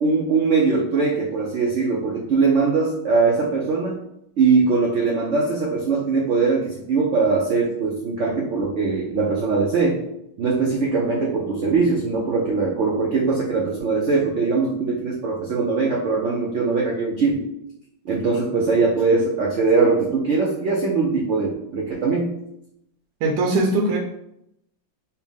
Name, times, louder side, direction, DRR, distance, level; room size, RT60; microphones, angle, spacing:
voice 1, 0.0-4.0 4.4-10.0 10.4-17.4 18.0-22.3, right 4 dB, 85° right, -2 dB, 0.6 m, -21 dB
voice 2, 23.2-24.0, right 2 dB, 70° right, 0 dB, 1.1 m, -20 dB
4.4 x 2.2 x 3.5 m, 0.78 s
omnidirectional pair, 2.0 m